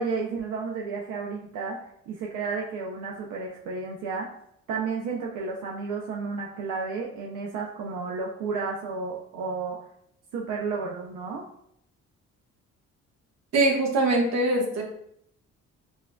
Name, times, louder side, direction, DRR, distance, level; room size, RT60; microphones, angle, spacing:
voice 1, 0.0-1.8 2.1-4.3 4.7-9.8 10.3-11.4, right 4 dB, 85° right, -2 dB, 0.6 m, -32 dB
voice 2, 13.5-14.8, right 2 dB, 60° right, -1 dB, 1.2 m, -22 dB
6.1 x 2.5 x 2.3 m, 0.72 s
cardioid pair, 90°, 30 cm